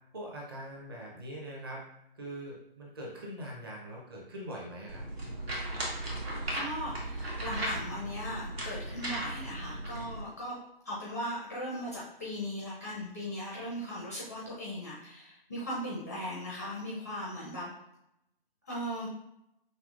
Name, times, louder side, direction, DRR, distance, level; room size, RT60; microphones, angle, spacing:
voice 1, 0.1-1.8 2.1-5.0, right 1 dB, 25° right, -3 dB, 0.8 m, -42 dB
sound 1, 4.9-10.2, right 1 dB, 80° right, 1.5 m, -36 dB
voice 2, 6.5-10.6 10.8-17.7 18.7-19.1, equal, 15° left, -5 dB, 0.5 m, -38 dB
5.6 x 2.9 x 2.4 m, 0.80 s
figure-of-eight pair, 145°, 30 cm